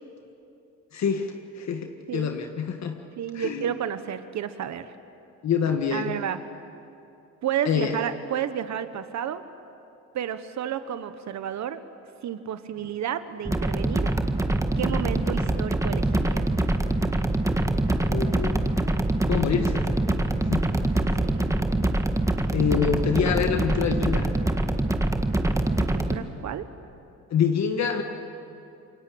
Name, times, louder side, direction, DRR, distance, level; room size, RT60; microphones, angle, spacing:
voice 1, 0.9-3.0 3.3-3.8 5.4-6.1 7.7-8.0 18.1-18.7 19.3-20.0 20.5-21.1 22.5-24.3 27.3-28.0, left 7 dB, 60° left, 4 dB, 1.8 m, -26 dB
voice 2, 3.2-4.9 5.9-6.4 7.4-9.4 10.1-11.8 12.2-14.1 14.8-16.5 21.2-21.5 25.7-26.6, right 9 dB, 65° right, 11 dB, 1.3 m, -31 dB
sound 1, 13.4-26.2, right 1 dB, 10° right, 1.7 m, -24 dB
27.5 x 23.5 x 8.7 m, 2.7 s
cardioid pair, 90°, 30 cm